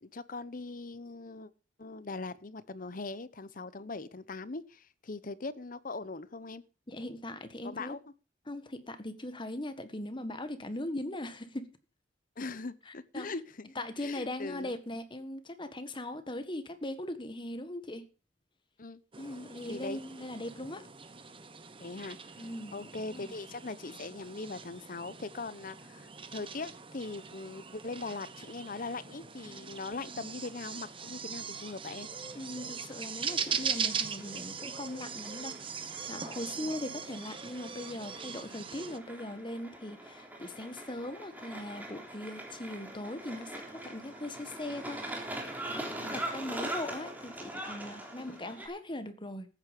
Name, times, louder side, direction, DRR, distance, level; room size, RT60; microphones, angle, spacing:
voice 1, 0.0-1.5 1.8-6.6 7.6-8.0 12.4-14.7 18.8-19.0 19.7-20.0 21.8-22.2 22.7-32.1 36.6-36.7 46.0-46.2 48.2-48.4, left 3 dB, 45° left, 0.9 m, -41 dB
voice 2, 6.9-8.0 8.5-11.7 12.9-13.3 13.7-18.1 19.2-20.9 22.4-23.3 32.3-35.5 36.1-45.0 45.7-45.9 46.1-49.5, left 1 dB, 25° left, 1.6 m, -40 dB
sound 1, 19.1-39.0, right 6 dB, 30° right, 1.1 m, -40 dB
sound 2, 29.9-48.7, right 1 dB, 10° right, 3.5 m, -43 dB
14.5 x 9.7 x 5.2 m
head